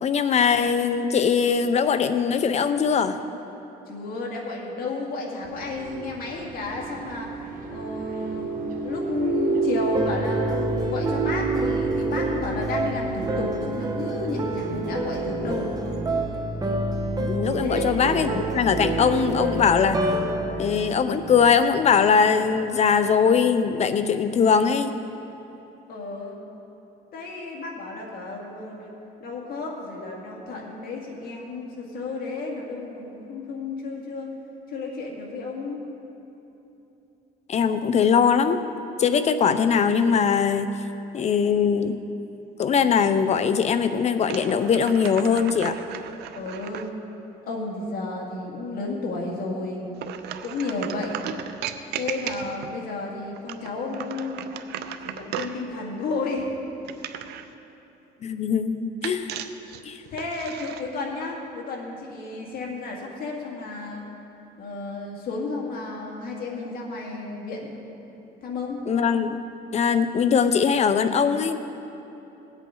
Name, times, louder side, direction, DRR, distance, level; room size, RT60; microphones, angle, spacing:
voice 1, 0.0-3.2 17.2-20.0 20.6-24.9 37.5-38.6 39.0-40.7 41.1-42.0 42.6-45.8 58.2-59.3 59.8-60.0 68.9-69.4 69.7-71.6, left 6 dB, 40° left, 10 dB, 0.7 m, -21 dB
voice 2, 3.9-7.3 7.7-8.5 8.8-15.7 17.6-17.9 25.9-26.4 27.1-28.9 29.2-34.3 34.7-35.9 46.3-46.9 47.4-49.8 50.4-51.2 52.0-54.5 55.0-56.5 60.1-64.0 64.6-67.8 68.4-68.8, left 3 dB, 60° left, -1 dB, 2.2 m, -32 dB
sound 1, 5.4-16.0, right 4 dB, 55° right, 1.2 m, -31 dB
sound 2, 9.9-22.1, right 2 dB, 25° right, 1.0 m, -28 dB
sound 3, 44.2-46.9 50.0-52.8 53.3-55.6 56.9-57.5 59.0-60.8, right 10 dB, 75° right, 0.6 m, -36 dB
18.0 x 8.2 x 3.9 m, 3.0 s
cardioid pair, 110°, 17 cm